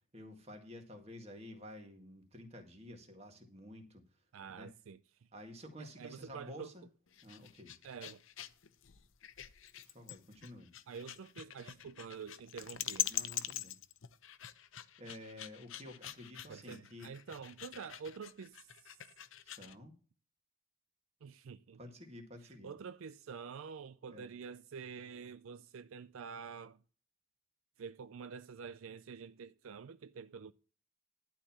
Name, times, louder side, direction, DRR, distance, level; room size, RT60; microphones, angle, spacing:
voice 1, 0.1-4.2 4.6-4.7 5.3-6.9 7.2-7.7 9.8-10.7 13.1-13.8 15.0-17.1 19.4-19.9 21.8-22.7 24.1-24.3, left 1 dB, 30° right, 2.0 m, -51 dB
voice 2, 4.3-5.3 5.8-6.7 7.8-8.2 10.9-13.1 16.5-18.7 21.2-21.8 22.4-26.8 27.8-30.5, right 6 dB, 75° right, 0.4 m, -47 dB
Old hound dog panting - then shakes off, 7.1-19.8, left 13 dB, 65° left, 0.7 m, -44 dB
12.0 x 4.5 x 7.2 m
head